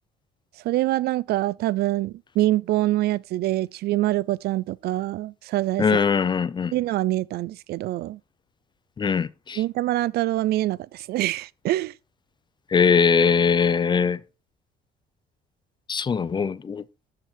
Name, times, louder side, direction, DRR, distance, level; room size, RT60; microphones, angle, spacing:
voice 1, 0.6-5.8 6.7-8.2 9.6-11.9, right 16 dB, 70° right, 0.5 m, -25 dB
voice 2, 5.8-6.7 9.0-9.6 12.7-14.2 15.9-16.8, left 6 dB, 25° left, 0.6 m, -21 dB
12.5 x 5.9 x 4.5 m
cardioid pair, 110°, 17 cm